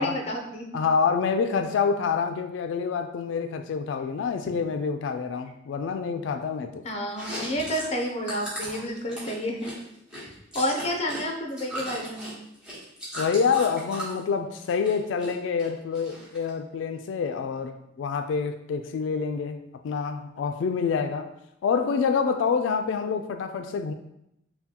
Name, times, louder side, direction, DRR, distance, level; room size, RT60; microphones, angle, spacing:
voice 1, 0.0-0.7 4.4-4.5 6.8-9.7 10.2-10.3 10.5-12.3, equal, 35° left, 2 dB, 0.6 m, -30 dB
voice 2, 0.7-6.8 13.2-21.3 21.6-23.9, left 5 dB, 90° left, 7 dB, 0.3 m, -27 dB
Chewing mastication, 7.1-11.2 11.5-14.2 14.6-15.3 15.6-16.5, equal, 5° right, 1.1 m, -37 dB
5.5 x 2.2 x 2.8 m, 0.82 s
head